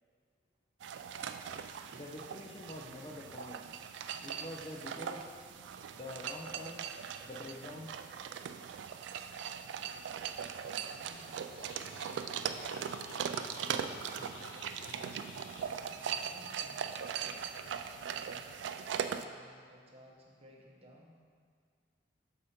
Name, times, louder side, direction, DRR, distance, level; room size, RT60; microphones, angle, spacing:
sound 1, 0.8-19.3, right 7 dB, 80° right, 0.3 m, -40 dB
voice 1, 1.9-3.7 4.2-5.3 5.9-6.9 7.2-8.0, left 1 dB, 30° left, -1 dB, 0.5 m, -46 dB
voice 2, 10.3-12.4 12.7-15.3 15.7-17.8 18.0-18.5 19.2-21.2, equal, 35° right, -2 dB, 0.9 m, -59 dB
sound 2, 11.1-16.1, left 4 dB, 90° left, 0.5 m, -53 dB
6.5 x 4.9 x 4.3 m, 2.2 s
head